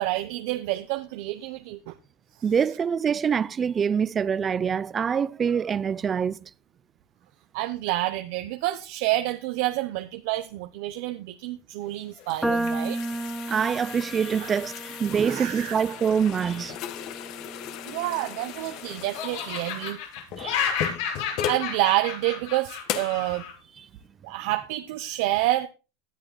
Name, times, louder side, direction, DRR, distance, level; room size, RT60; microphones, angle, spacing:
voice 1, 0.0-1.9 7.5-13.0 14.4-14.6 15.2-15.8 17.9-20.0 21.2-23.5 24.2-25.7, right 16 dB, 65° right, 0.9 m, -28 dB
voice 2, 2.4-6.5 13.5-16.8 20.4-20.7, right 7 dB, 25° right, 0.6 m, -25 dB
sound 1, 11.9-21.7 22.2-22.3 22.9-23.2, left 10 dB, 50° left, 1.5 m, -37 dB
sound 2, 12.4-18.8, right 2 dB, ahead, 1.3 m, -34 dB
Laughter, 17.9-18.8 19.1-23.5, left 7 dB, 70° left, 6.0 m, -31 dB
18.0 x 10.5 x 2.3 m
supercardioid pair, 120°, 0 cm